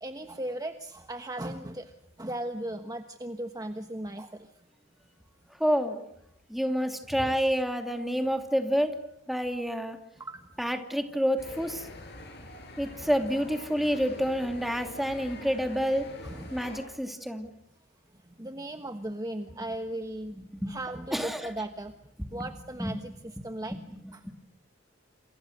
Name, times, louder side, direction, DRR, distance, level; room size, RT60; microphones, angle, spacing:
voice 1, 0.0-1.9 2.2-4.5 7.1-7.4 10.2-10.4 13.0-13.1 16.2-16.5 18.4-20.4 20.7-21.9 22.3-23.1 23.4-23.8 24.1-24.2, right 1 dB, 20° right, 7 dB, 1.2 m, -37 dB
voice 2, 5.6-6.0 6.5-9.0 9.3-10.0 10.6-11.9 12.8-16.1 16.5-17.5 20.3-20.8 21.1-21.5 22.3-22.5 22.8-22.9 23.4-24.3, equal, ahead, 5 dB, 2.7 m, -29 dB
sound 1, 11.4-16.8, left 1 dB, 55° left, 7.5 m, -44 dB
28.5 x 28.0 x 6.6 m, 0.78 s
head